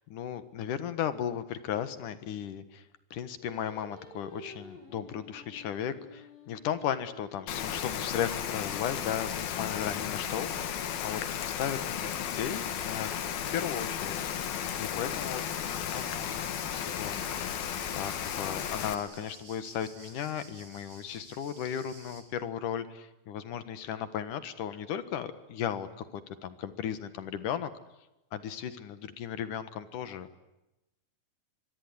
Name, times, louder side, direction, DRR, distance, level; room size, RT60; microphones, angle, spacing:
voice 1, 0.1-2.8 3.1-14.5 14.8-16.4 16.7-17.6 17.9-27.7 28.3-30.4, left 9 dB, 65° left, 12 dB, 2.8 m, -36 dB
Singing, 3.4-8.7, left 2 dB, 45° left, 6.4 m, -52 dB
Rain, 7.5-18.9, left 9 dB, 80° left, 3.6 m, -34 dB
sound 1, 15.1-22.2, right 3 dB, 40° right, 5.4 m, -52 dB
25.0 x 23.0 x 9.8 m, 0.94 s
omnidirectional pair, 4.2 m